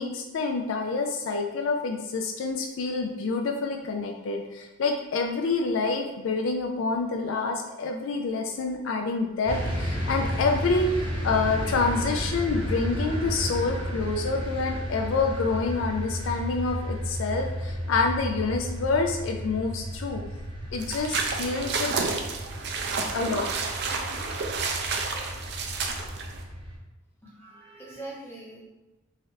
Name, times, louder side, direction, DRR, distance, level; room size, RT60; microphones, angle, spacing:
voice 1, 0.0-20.2 20.7-21.9 23.1-23.5, left 4 dB, 70° left, 3 dB, 0.4 m, -27 dB
sound 1, 9.5-26.8, equal, 25° right, 0.7 m, -33 dB
sound 2, 20.8-26.4, right 4 dB, 55° right, 0.4 m, -30 dB
voice 2, 27.2-28.6, right 2 dB, 10° left, -6 dB, 0.9 m, -42 dB
4.0 x 2.5 x 3.1 m, 1.1 s
head